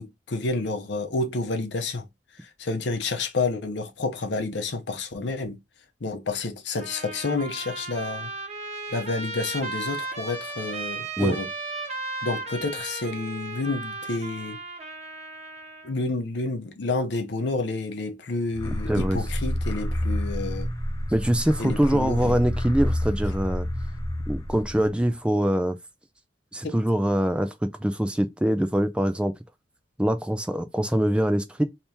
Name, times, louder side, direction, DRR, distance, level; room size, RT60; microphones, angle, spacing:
voice 1, 0.0-2.1 2.4-5.6 6.0-8.3 8.9-11.5 12.2-14.6 15.8-20.7 21.6-22.4 26.6-26.8, left 3 dB, 75° left, 0.7 m, -29 dB
Trumpet, 6.8-15.9, right 3 dB, 35° right, 1.1 m, -35 dB
sound 1, 18.5-25.1, equal, 20° left, 0.7 m, -29 dB
voice 2, 18.9-19.2 21.1-23.7 24.3-25.8 26.5-27.5 27.8-29.3 30.0-31.6, equal, 5° right, 0.3 m, -23 dB
2.9 x 2.8 x 3.3 m
head